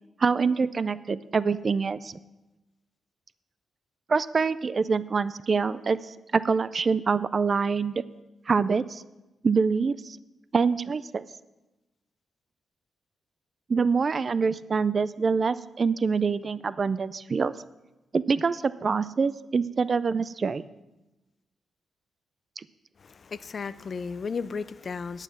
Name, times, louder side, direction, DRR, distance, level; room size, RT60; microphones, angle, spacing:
voice 1, 0.2-2.2 4.1-8.0 8.5-9.0 9.4-10.2 10.5-11.2 13.7-17.5 18.1-20.7 22.6-22.7, right 5 dB, 40° right, 16 dB, 0.3 m, -25 dB
voice 2, 23.0-25.2, left 5 dB, 45° left, 14 dB, 0.4 m, -34 dB
9.4 x 8.9 x 5.9 m, 1.0 s
cardioid pair, 115°, 0 cm